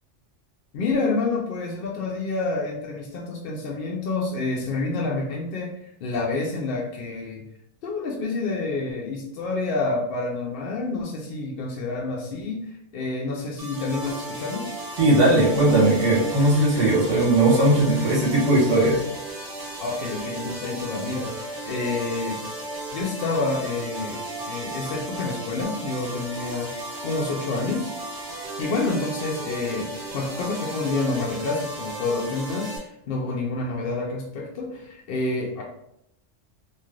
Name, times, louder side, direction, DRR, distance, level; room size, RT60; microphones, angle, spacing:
voice 1, 0.7-5.7 6.0-7.4 7.8-14.7 19.8-22.4 22.9-27.9 28.6-35.6, left 3 dB, 60° left, -1 dB, 0.6 m, -28 dB
sound 1, 13.6-32.8, right 1 dB, 55° right, 1.1 m, -35 dB
voice 2, 15.0-19.0, right 1 dB, 85° right, -6 dB, 1.5 m, -18 dB
3.2 x 2.5 x 2.4 m, 0.77 s
omnidirectional pair, 1.2 m